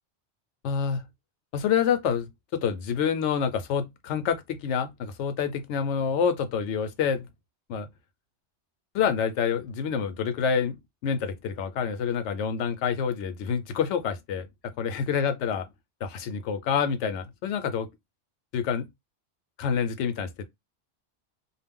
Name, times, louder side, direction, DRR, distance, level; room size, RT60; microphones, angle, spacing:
voice 1, 0.6-1.0 1.5-7.3 7.7-7.9 8.9-15.6 16.0-17.9 18.5-18.9 19.6-20.4, left 7 dB, 80° left, 0.9 m, -27 dB
2.4 x 2.0 x 3.5 m
omnidirectional pair, 1.2 m